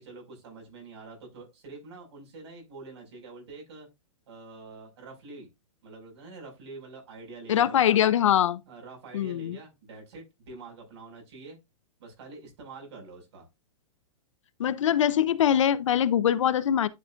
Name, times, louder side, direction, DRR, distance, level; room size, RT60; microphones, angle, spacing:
voice 1, 0.0-3.9 4.3-5.5 5.8-8.1 8.7-11.6 12.0-13.5, right 3 dB, 55° right, 5.4 m, -46 dB
voice 2, 7.5-8.6 9.1-9.6 14.6-16.9, left 10 dB, 65° left, 0.6 m, -23 dB
10.5 x 5.6 x 2.5 m
hypercardioid pair, 180°, 17 cm